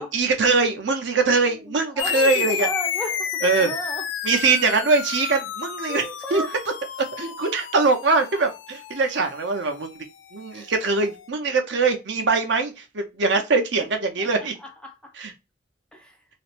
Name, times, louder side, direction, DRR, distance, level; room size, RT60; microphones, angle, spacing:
voice 1, 0.0-2.7 3.4-3.7 4.2-6.0 6.3-6.4 7.1-10.0 10.3-14.5 15.2-15.3, right 4 dB, 70° right, 0.6 m, -22 dB
voice 2, 1.7-4.0 5.9-6.5 10.5-10.7 14.2-15.1 15.9-16.2, equal, 5° left, 0.4 m, -35 dB
sound 1, 2.0-10.9, left 9 dB, 85° left, 0.3 m, -31 dB
2.5 x 2.0 x 2.9 m
head